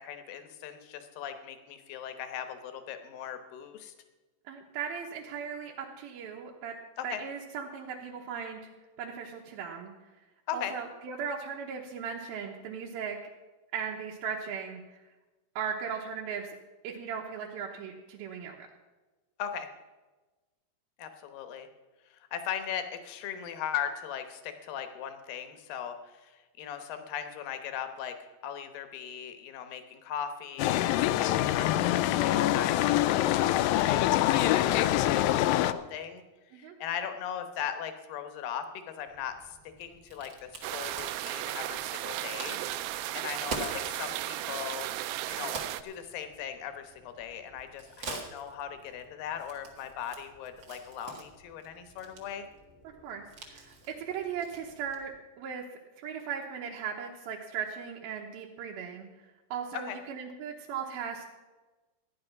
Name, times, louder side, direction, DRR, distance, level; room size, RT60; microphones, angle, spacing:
voice 1, 0.0-3.9 7.0-7.2 10.5-10.7 19.4-19.7 21.0-21.7 22.1-36.2 36.5-42.6 43.1-44.9 45.3-45.5 45.8-52.5 59.9-60.0, left 9 dB, 70° left, 8 dB, 2.6 m, -39 dB
voice 2, 4.5-6.8 7.0-8.6 9.0-9.9 10.5-13.2 13.7-15.1 15.6-16.6 16.8-18.7 36.6-36.7 53.0-55.1 55.4-55.6 56.0-59.1 59.5-61.3, right 7 dB, 70° right, -2 dB, 2.7 m, -37 dB
sound 1, 30.6-35.7, left 14 dB, 90° left, 2.0 m, -25 dB
Crack, 39.1-55.2, right 3 dB, 40° right, 1.8 m, -46 dB
sound 2, 40.6-45.8, right 15 dB, 85° right, 2.7 m, -35 dB
14.5 x 10.5 x 5.9 m, 1.2 s
omnidirectional pair, 4.7 m